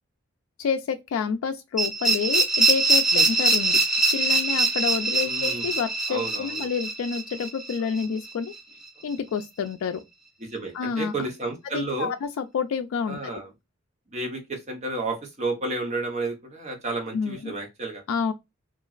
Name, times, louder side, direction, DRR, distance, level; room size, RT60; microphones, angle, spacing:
voice 1, 0.6-3.8 4.1-8.5 9.0-10.0 10.7-11.3 11.6-13.3 17.1-17.5 18.1-18.3, left 6 dB, 90° left, 0.3 m, -29 dB
sound 1, 1.8-8.6, right 2 dB, 5° right, 0.6 m, -23 dB
voice 2, 5.2-5.7 6.1-6.7 10.4-12.1 13.1-13.5 14.1-18.0, right 2 dB, 35° right, 0.8 m, -31 dB
3.0 x 2.4 x 2.3 m
head